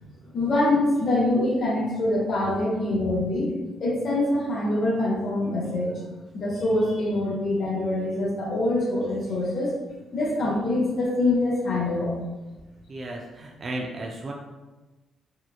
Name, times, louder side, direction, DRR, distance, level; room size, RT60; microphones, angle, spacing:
voice 1, 0.0-3.5 3.8-6.0 6.3-9.7 10.1-12.2, left 2 dB, 55° left, -5 dB, 0.7 m, -24 dB
voice 2, 12.9-14.3, right 1 dB, 40° right, 0 dB, 0.3 m, -34 dB
2.9 x 2.2 x 2.3 m, 1.1 s
cardioid pair, 90°, 0 cm